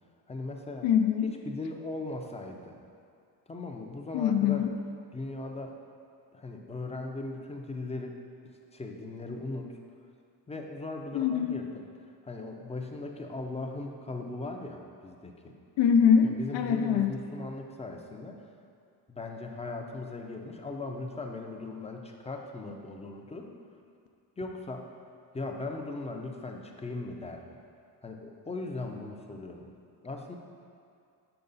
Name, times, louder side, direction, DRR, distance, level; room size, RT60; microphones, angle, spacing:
voice 1, 0.3-0.9 1.2-2.7 3.5-4.7 5.1-5.8 6.3-8.2 8.7-9.7 10.5-11.8 12.2-15.5 16.2-18.4 19.1-23.5 24.4-24.9 25.3-27.5 28.0-29.7 30.0-30.4, left 2 dB, 15° left, 2 dB, 0.6 m, -38 dB
voice 2, 0.8-1.3 4.1-4.7 11.1-11.6 15.8-17.2, left 7 dB, 85° left, 6 dB, 0.6 m, -24 dB
6.9 x 4.8 x 4.0 m, 2.3 s
cardioid pair, 95°, 43 cm